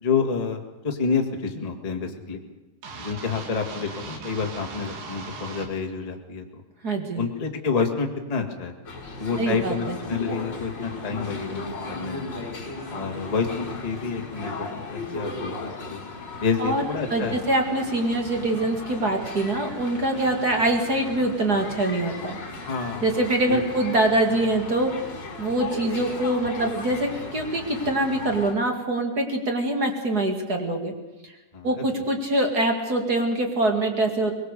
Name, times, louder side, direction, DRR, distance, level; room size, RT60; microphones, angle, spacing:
voice 1, 0.0-2.4 3.0-6.6 7.1-8.7 9.2-12.3 12.9-16.0 16.4-17.4 22.6-23.2 23.5-23.6 31.5-32.0, left 5 dB, 85° left, 2 dB, 0.3 m, -28 dB
sound 1, 2.8-5.7, right 4 dB, 60° right, 3.8 m, -38 dB
voice 2, 6.8-7.3 9.4-10.0 16.6-22.4 23.0-24.9 25.4-30.9 31.6-34.3, right 1 dB, 30° right, 4 dB, 1.9 m, -24 dB
sound 2, 8.8-28.5, left 3 dB, 25° left, 5.5 m, -36 dB
23.5 x 21.0 x 6.8 m, 1.1 s
omnidirectional pair, 4.8 m